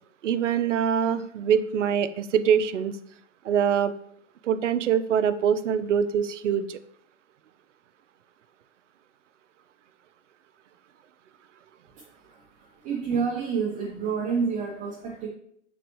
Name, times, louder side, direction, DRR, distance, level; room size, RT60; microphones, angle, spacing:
voice 1, 0.2-3.0 3.4-3.9 4.4-6.8, right 8 dB, 85° right, 12 dB, 0.5 m, -24 dB
voice 2, 11.9-15.3, right 5 dB, 20° right, -2 dB, 0.6 m, -29 dB
4.9 x 3.4 x 3.0 m, 0.67 s
hypercardioid pair, 125°, 36 cm